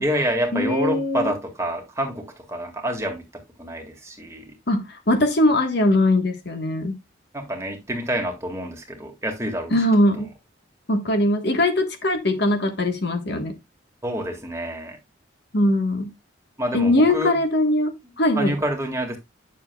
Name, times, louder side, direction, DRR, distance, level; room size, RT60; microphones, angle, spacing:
voice 1, 0.0-4.6 7.3-9.7 14.0-15.0 16.6-17.4 18.4-19.2, equal, 15° right, 1.9 m, -27 dB
voice 2, 0.5-1.3 4.7-6.9 9.7-10.3 10.9-13.6 15.5-16.1 16.7-18.5, left 1 dB, 55° left, 1.4 m, -21 dB
9.9 x 6.9 x 2.3 m
head